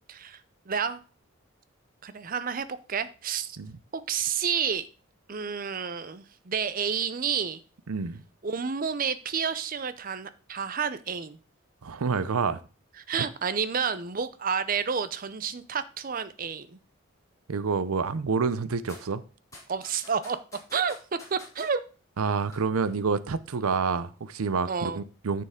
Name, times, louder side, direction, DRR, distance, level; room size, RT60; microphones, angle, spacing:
voice 1, 0.7-1.0 2.0-3.6 3.9-4.9 5.3-7.6 8.4-11.4 13.1-16.8 19.7-20.4 20.7-21.0 21.3-21.8 24.7-25.0, right 6 dB, 40° right, 0.6 m, -30 dB
voice 2, 7.9-8.2 11.8-12.6 13.2-13.3 17.5-19.2 22.2-25.4, right 5 dB, 80° right, 0.6 m, -28 dB
sound 1, 18.9-19.0 19.5-21.7 22.3-22.6 22.9-23.0, left 2 dB, 15° left, 2.6 m, -47 dB
9.8 x 6.8 x 3.7 m
head